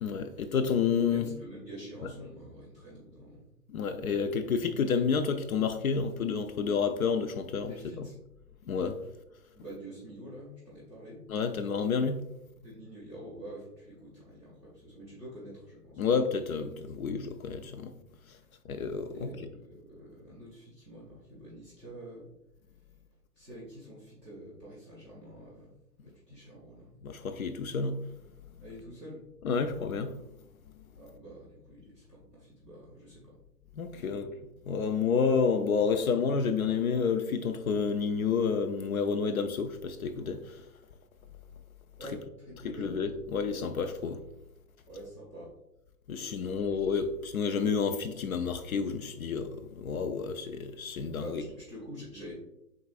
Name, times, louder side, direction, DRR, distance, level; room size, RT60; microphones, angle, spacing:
voice 1, 0.0-1.3 3.7-8.1 8.7-9.0 11.3-12.2 16.0-17.9 18.7-19.3 27.0-28.0 29.4-30.1 33.7-34.3 34.7-40.6 42.0-42.1 42.8-44.2 46.1-51.4, left 5 dB, 60° left, 0.5 m, -30 dB
voice 2, 1.1-3.4 7.7-8.2 9.5-11.2 12.5-16.1 19.1-22.3 23.4-25.7 26.0-26.9 28.6-29.2 31.0-33.4 33.9-34.2 42.0-42.9 44.9-45.5 46.1-46.9 51.2-52.4, right 1 dB, 5° left, 0.6 m, -47 dB
4.7 x 3.8 x 2.4 m
hypercardioid pair, 150°, 48 cm